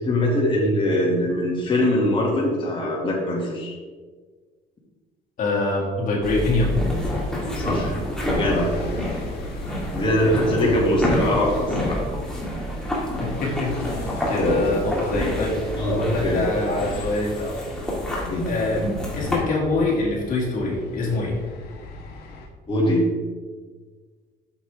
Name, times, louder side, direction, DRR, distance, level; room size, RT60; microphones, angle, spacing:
voice 1, 0.0-3.7 7.5-8.0 8.4-8.7 9.9-12.0 14.4-14.6 15.8-16.4 18.3-18.5 22.7-23.1, left 1 dB, 30° left, -4 dB, 2.1 m, -22 dB
voice 2, 5.4-6.7 10.1-10.3 13.2-14.0 14.3-17.6 18.4-18.8 19.1-21.4, left 2 dB, 55° left, -3 dB, 2.2 m, -24 dB
sound 1, 6.2-19.4, equal, 5° left, 2.2 m, -28 dB
sound 2, 6.9-22.5, left 2 dB, 70° left, 1.4 m, -38 dB
8.4 x 6.9 x 3.4 m, 1.4 s
cardioid pair, 110°, 17 cm